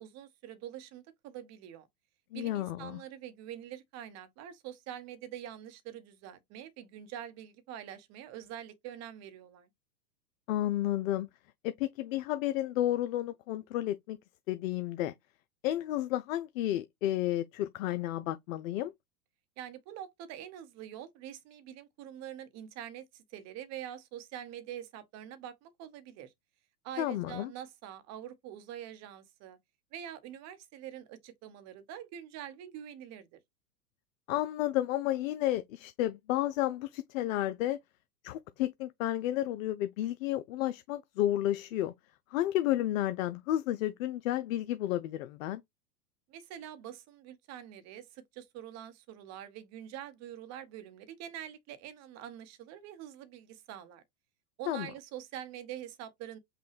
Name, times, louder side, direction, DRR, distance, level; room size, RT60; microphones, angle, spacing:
voice 1, 0.0-1.9 2.3-9.7 19.6-26.3 26.8-29.6 29.9-33.4 46.3-54.0 54.6-56.4, right 10 dB, 35° right, 0.9 m, -45 dB
voice 2, 2.3-3.0 10.5-11.3 11.6-14.2 14.5-15.1 15.6-18.9 27.0-27.5 34.3-37.8 38.2-41.9 42.3-45.6 54.7-54.9, left 14 dB, 55° left, 0.5 m, -31 dB
5.6 x 2.2 x 3.3 m
hypercardioid pair, 110°, 49 cm